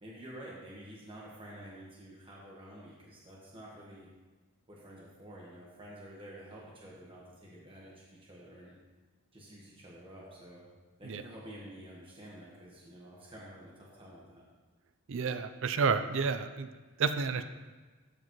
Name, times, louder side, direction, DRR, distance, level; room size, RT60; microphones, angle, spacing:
voice 1, 0.0-4.1 4.7-8.7 9.3-10.6 11.0-14.4, right 1 dB, 25° right, -5 dB, 1.3 m, -49 dB
voice 2, 15.1-16.7 17.0-17.4, right 5 dB, 60° right, 10 dB, 0.5 m, -30 dB
13.0 x 5.1 x 3.1 m, 1.3 s
head